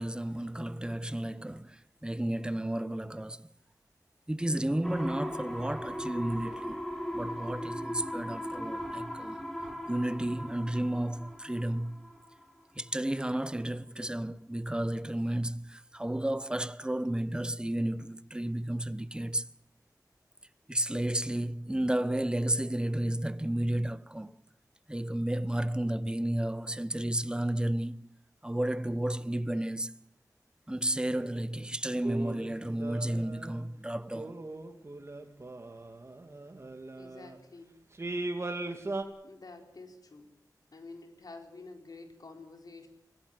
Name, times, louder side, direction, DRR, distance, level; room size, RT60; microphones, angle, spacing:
voice 1, 0.0-3.5 4.3-6.8 7.1-9.4 9.9-12.0 12.8-19.5 20.7-24.4 24.9-28.1 28.4-29.9 30.7-34.4, right 1 dB, 15° right, 0.9 m, -32 dB
sound 1, 4.8-12.5 12.9-13.0, equal, 5° left, 4.5 m, -38 dB
sound 2, 31.1-31.4 32.0-33.7 34.1-37.4 38.0-39.0, right 2 dB, 40° right, 2.9 m, -39 dB
voice 2, 37.0-37.7 39.2-40.4 40.7-42.9, left 3 dB, 70° left, 4.2 m, -49 dB
24.5 x 16.5 x 9.4 m
wide cardioid pair, 60°, 7 cm